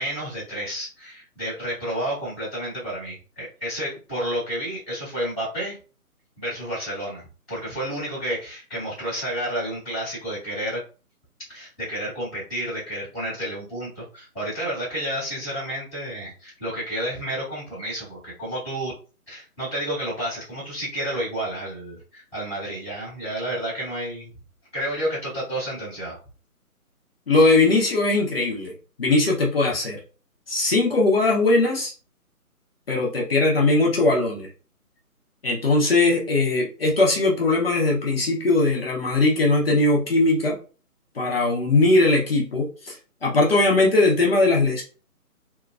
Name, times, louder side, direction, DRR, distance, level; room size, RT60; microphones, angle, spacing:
voice 1, 0.0-5.8 6.4-7.2 7.5-10.8 11.5-18.9 19.3-24.3 24.7-26.2, right 1 dB, ahead, -24 dB, 0.8 m, -30 dB
voice 2, 27.3-28.7 29.0-30.0 30.5-31.9 32.9-34.5 35.4-40.6 41.1-44.8, left 2 dB, 40° left, -3 dB, 0.9 m, -20 dB
2.9 x 2.4 x 2.5 m, 0.36 s
figure-of-eight pair, 160°, 45 cm